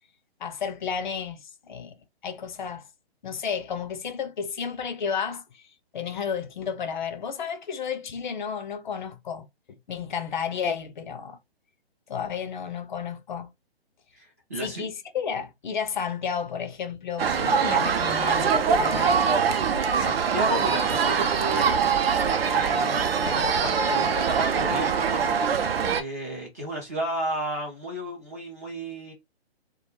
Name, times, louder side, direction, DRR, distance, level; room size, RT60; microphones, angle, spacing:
voice 1, 0.4-2.0 2.2-2.8 3.2-5.7 5.9-9.4 9.9-11.4 12.1-13.5 14.6-19.2, left 6 dB, 50° left, 0.5 m, -32 dB
voice 2, 14.1-14.9 19.6-21.7 22.2-25.3 25.9-29.1, right 1 dB, 15° right, 0.4 m, -33 dB
sound 1, 17.2-26.0, right 6 dB, 65° right, 0.6 m, -23 dB
2.3 x 2.2 x 2.9 m
figure-of-eight pair, 140°, 32 cm